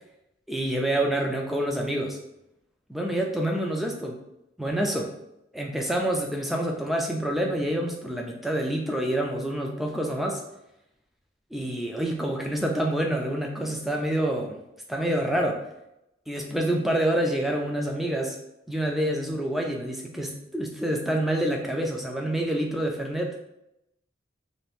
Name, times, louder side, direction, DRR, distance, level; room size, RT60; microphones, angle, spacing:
voice 1, 0.5-2.2 2.9-4.2 4.6-5.1 5.5-10.4 11.5-14.5 14.9-15.6 16.3-18.4 18.7-23.3, right 1 dB, ahead, 0 dB, 0.3 m, -27 dB
2.6 x 2.5 x 3.4 m, 0.85 s
head